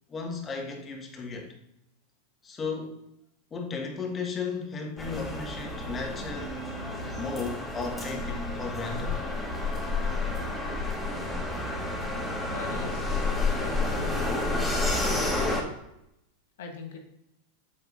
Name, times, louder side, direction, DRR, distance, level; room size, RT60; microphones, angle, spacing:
voice 1, 0.1-1.5 2.4-3.0 3.5-6.6 7.2-9.2, left 4 dB, 25° left, 1 dB, 1.7 m, -35 dB
sound 1, 5.0-15.6, left 2 dB, 5° left, 1.7 m, -30 dB
voice 2, 12.5-13.0 13.6-14.4 16.6-17.0, left 4 dB, 65° left, 3 dB, 1.3 m, -40 dB
7.6 x 7.3 x 2.7 m, 0.80 s
figure-of-eight pair, 90°, 0 cm